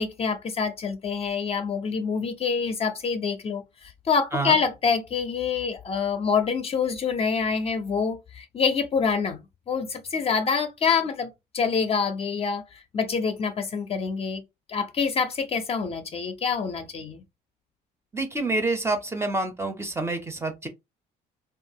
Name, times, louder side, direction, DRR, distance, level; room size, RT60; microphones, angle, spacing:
voice 1, 0.0-9.4 9.7-14.4 14.7-17.2, left 5 dB, 35° left, 0.5 m, -26 dB
voice 2, 18.1-20.7, right 2 dB, 15° right, 0.5 m, -27 dB
2.8 x 2.4 x 2.7 m
cardioid pair, 110°, 17 cm